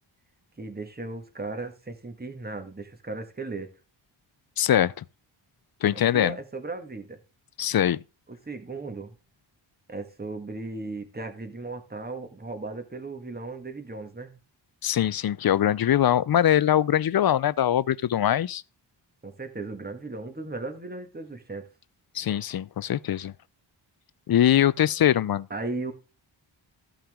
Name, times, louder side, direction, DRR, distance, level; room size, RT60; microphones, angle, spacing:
voice 1, 0.6-3.7 5.9-7.2 8.3-9.2 9.9-14.4 19.2-21.7 25.5-25.9, right 3 dB, 20° right, 1.7 m, -36 dB
voice 2, 4.6-5.0 5.8-6.4 7.6-8.0 14.8-18.6 22.1-23.3 24.3-25.5, left 11 dB, 50° left, 0.5 m, -22 dB
14.5 x 5.8 x 3.7 m
wide cardioid pair, 90°, 47 cm